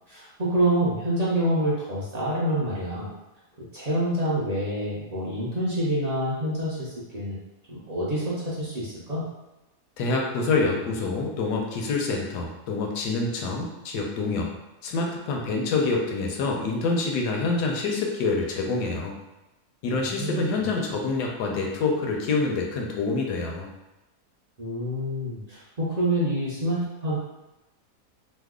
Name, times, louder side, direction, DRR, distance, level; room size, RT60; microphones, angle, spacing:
voice 1, 0.1-3.1 3.7-7.4 7.7-9.2 20.1-20.4 24.6-27.2, right 1 dB, 55° right, -7 dB, 0.4 m, -27 dB
voice 2, 10.0-14.5 14.8-19.1 19.8-23.7, left 3 dB, 85° left, 0 dB, 1.2 m, -26 dB
3.1 x 2.0 x 3.5 m, 1.0 s
omnidirectional pair, 1.7 m